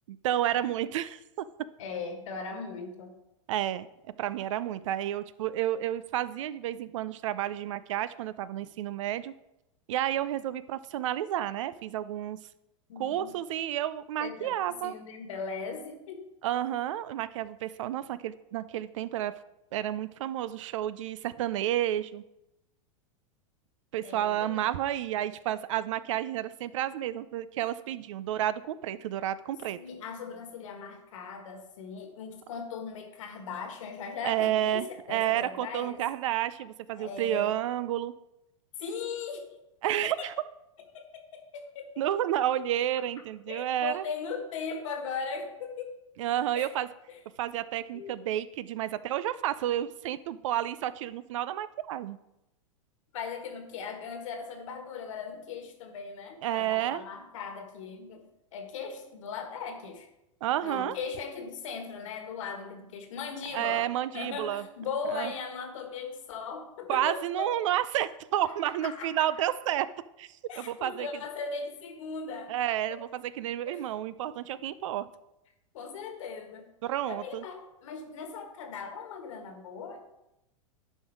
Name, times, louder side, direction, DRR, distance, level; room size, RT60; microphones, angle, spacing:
voice 1, 0.1-1.5 3.5-3.9 4.2-9.3 9.9-12.4 13.0-15.0 16.4-19.3 19.7-22.2 23.9-29.8 34.2-38.1 39.8-40.3 42.0-44.0 46.2-46.9 47.4-52.2 56.4-57.0 60.4-61.0 63.5-64.7 65.1-65.3 66.9-69.9 70.2-71.1 72.5-75.1 76.8-77.4, right 12 dB, 70° right, 16 dB, 0.5 m, -31 dB
voice 2, 1.8-3.1 12.9-13.3 14.2-16.3 24.0-24.8 29.7-36.0 37.0-37.6 38.8-39.5 40.0-40.3 40.9-42.0 43.5-46.0 46.5-46.7 47.1-47.2 47.9-48.2 53.1-58.2 58.5-60.1 60.6-63.8 64.1-67.5 68.4-69.3 70.5-72.5 72.9-73.0 73.6-73.8 75.7-76.7 77.1-80.0, left 5 dB, 70° left, 6 dB, 1.6 m, -39 dB
11.0 x 4.5 x 4.6 m, 0.89 s
hypercardioid pair, 105°, 17 cm